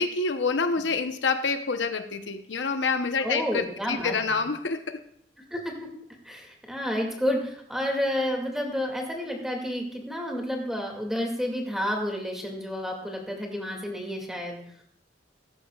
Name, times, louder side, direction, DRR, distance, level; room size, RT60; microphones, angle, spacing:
voice 1, 0.0-5.0, left 4 dB, 85° left, 8 dB, 0.9 m, -27 dB
voice 2, 3.2-4.4 5.5-5.9 6.2-14.6, equal, 5° right, 0 dB, 2.3 m, -30 dB
16.5 x 13.5 x 2.4 m, 0.66 s
head